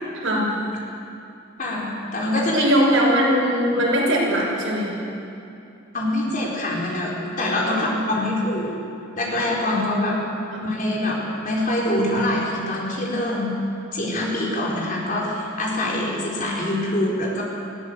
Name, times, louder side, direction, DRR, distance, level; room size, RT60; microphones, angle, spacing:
voice 1, 0.2-0.5 2.5-4.9 7.7-8.1 9.7-10.2 10.5-10.6, equal, 80° right, -4 dB, 6.6 m, -21 dB
voice 2, 1.6-2.6 5.9-8.7 9.2-10.2 10.6-13.6 13.9-17.4, left 1 dB, 40° left, -3 dB, 4.4 m, -24 dB
20.0 x 16.0 x 8.2 m, 2.7 s
head